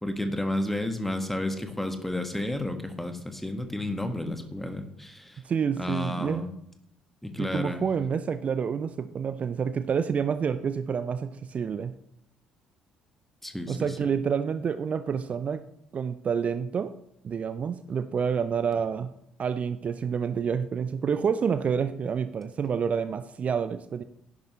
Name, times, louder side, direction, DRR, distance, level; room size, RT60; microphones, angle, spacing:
voice 1, 0.0-5.4 5.8-6.5 7.2-7.8 13.4-14.0, left 1 dB, 5° left, 6 dB, 1.6 m, -31 dB
voice 2, 5.4-6.4 7.4-11.9 13.7-15.6 15.9-16.9 17.2-19.1 19.4-24.0, right 6 dB, 40° right, 12 dB, 0.5 m, -28 dB
12.0 x 10.5 x 3.2 m, 0.77 s
figure-of-eight pair, 50°, 4 cm